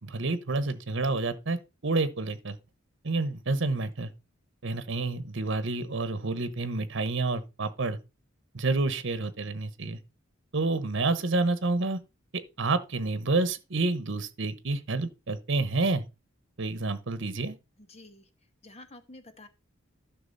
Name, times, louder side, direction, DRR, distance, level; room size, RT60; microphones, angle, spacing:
voice 1, 0.0-2.6 3.0-4.1 4.6-8.0 8.5-10.0 10.5-12.0 12.6-16.0 16.6-17.6, right 3 dB, 65° right, 1.1 m, -29 dB
voice 2, 17.9-18.2 18.6-19.5, left 2 dB, 35° left, 1.2 m, -49 dB
12.0 x 6.1 x 4.0 m
head